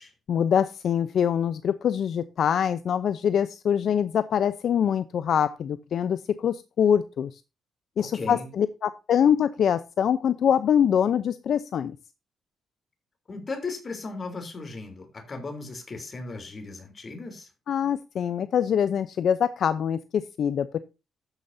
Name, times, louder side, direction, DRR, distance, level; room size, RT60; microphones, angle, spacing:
voice 1, 0.3-7.4 8.0-12.0 17.7-20.8, left 8 dB, 60° left, 0.6 m, -24 dB
voice 2, 8.0-8.5 13.3-17.5, left 3 dB, 30° left, 3.3 m, -36 dB
12.5 x 9.0 x 2.7 m
cardioid pair, 135°, 0 cm